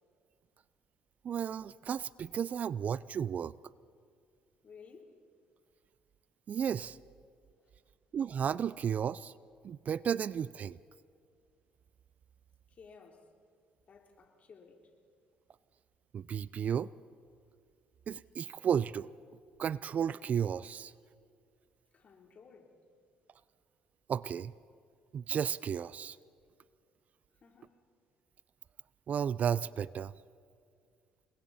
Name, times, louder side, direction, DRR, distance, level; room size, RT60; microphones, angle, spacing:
voice 1, 1.2-3.5 6.5-7.0 8.1-9.3 9.6-10.8 16.1-16.9 18.1-19.1 19.6-20.9 24.1-24.5 25.1-26.2 29.1-30.1, right 8 dB, 45° right, 0.4 m, -33 dB
voice 2, 4.6-5.2 7.6-7.7 12.7-13.3 13.9-14.9 21.9-22.8 27.3-27.8, left 5 dB, 45° left, 3.5 m, -56 dB
29.0 x 21.0 x 4.2 m
supercardioid pair, 85°, 3 cm